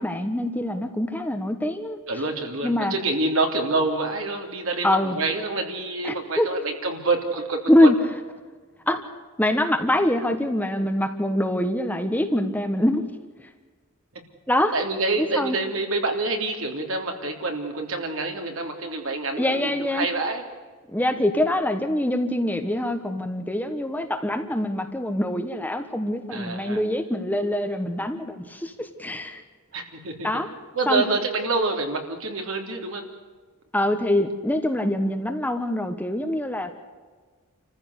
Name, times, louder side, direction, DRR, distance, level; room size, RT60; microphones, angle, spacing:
voice 1, 0.0-2.0 2.6-2.9 4.8-5.2 6.0-6.6 7.7-7.9 8.9-9.1 9.4-13.0 14.5-14.7 15.2-15.6 19.4-20.1 20.9-29.4 30.2-30.5 30.9-31.0 33.7-36.7, left 1 dB, 10° left, 6 dB, 1.3 m, -24 dB
voice 2, 2.1-7.9 14.7-20.4 26.3-26.8 29.7-30.3 30.7-33.1, right 3 dB, 65° right, 3 dB, 3.5 m, -27 dB
28.5 x 15.0 x 8.2 m, 1.5 s
head